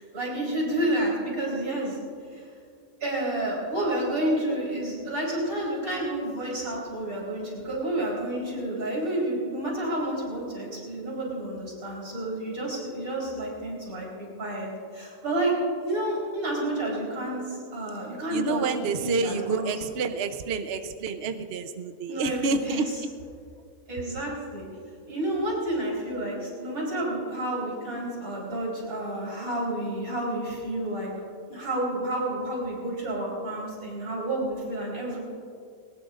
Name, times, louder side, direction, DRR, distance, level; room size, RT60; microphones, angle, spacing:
voice 1, 0.0-2.0 2.3-2.5 3.0-15.5 15.8-18.6 19.0-19.7 22.1-22.8 23.9-24.7 25.1-31.1 31.5-35.2, right 1 dB, 80° right, -4 dB, 4.5 m, -30 dB
voice 2, 18.3-22.9, right 4 dB, 55° right, 7 dB, 0.9 m, -28 dB
21.5 x 18.5 x 2.5 m, 2.3 s
omnidirectional pair, 1.5 m